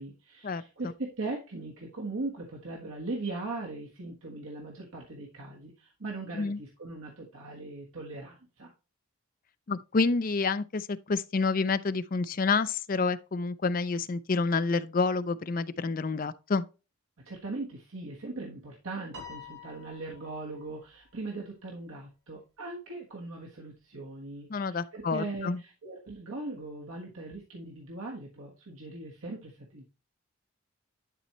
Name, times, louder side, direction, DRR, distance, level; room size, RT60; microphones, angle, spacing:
voice 1, 0.0-8.7 17.2-29.8, right 2 dB, 75° right, 1.4 m, -39 dB
voice 2, 9.7-16.6 24.5-25.6, left 4 dB, 40° left, 0.4 m, -28 dB
Piano, 19.1-20.7, left 5 dB, 55° right, 2.6 m, -47 dB
11.0 x 4.3 x 3.0 m
head